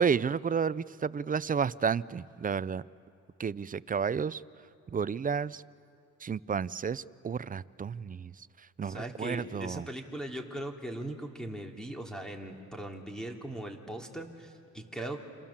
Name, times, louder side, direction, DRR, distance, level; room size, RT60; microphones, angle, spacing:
voice 1, 0.0-2.9 3.4-4.4 4.9-5.6 6.2-8.3 8.8-9.8, right 6 dB, 30° right, 18 dB, 0.5 m, -31 dB
voice 2, 8.8-15.2, right 1 dB, ahead, 2 dB, 3.2 m, -39 dB
28.0 x 27.5 x 7.4 m, 2.7 s
cardioid pair, 90°, 30 cm